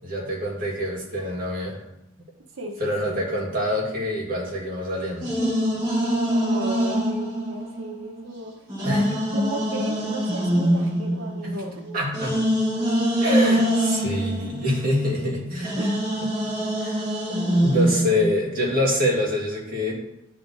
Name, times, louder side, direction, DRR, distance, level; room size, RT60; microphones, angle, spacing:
voice 1, 0.0-1.8 2.8-5.3 8.8-9.1 11.9-12.3 13.2-16.0 16.8-17.0 17.5-19.9, left 1 dB, 45° right, -3 dB, 1.9 m, -25 dB
voice 2, 2.6-3.2 6.2-12.0 15.8-15.9 17.5-17.6, right 1 dB, 85° right, 3 dB, 1.0 m, -35 dB
sound 1, 5.2-8.2 8.7-15.3 15.6-18.3, equal, 20° right, 1.6 m, -24 dB
10.0 x 3.4 x 4.0 m, 0.84 s
head